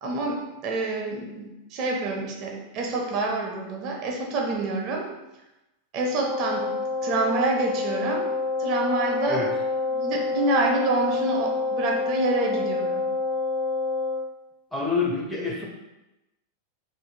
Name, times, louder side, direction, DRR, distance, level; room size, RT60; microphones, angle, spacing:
voice 1, 0.0-5.1 5.9-6.7 7.0-8.3 8.6-9.4 9.9-13.0, right 2 dB, 40° right, 0 dB, 0.5 m, -27 dB
Wind instrument woodwind instrument, 6.1-14.3, left 3 dB, 85° left, 1.5 m, -27 dB
voice 2, 14.7-15.6, left 4 dB, 5° left, -3 dB, 0.5 m, -27 dB
2.6 x 2.4 x 2.7 m, 0.98 s
figure-of-eight pair, 90°, 0 cm